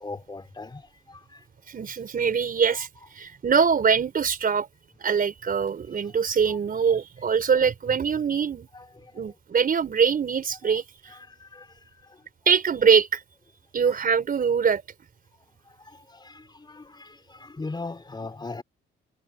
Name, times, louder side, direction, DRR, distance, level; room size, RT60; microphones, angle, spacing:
voice 1, 0.0-1.4 2.7-2.9 6.1-6.2 6.5-6.6 8.7-9.4 11.1-12.2 15.7-18.6, left 3 dB, 20° left, 4.0 m, -40 dB
voice 2, 1.7-2.9 3.1-4.7 5.0-8.7 9.1-10.8 12.5-13.2 13.7-14.8, right 6 dB, 45° right, 4.4 m, -23 dB
cardioid pair, 90°, 20 cm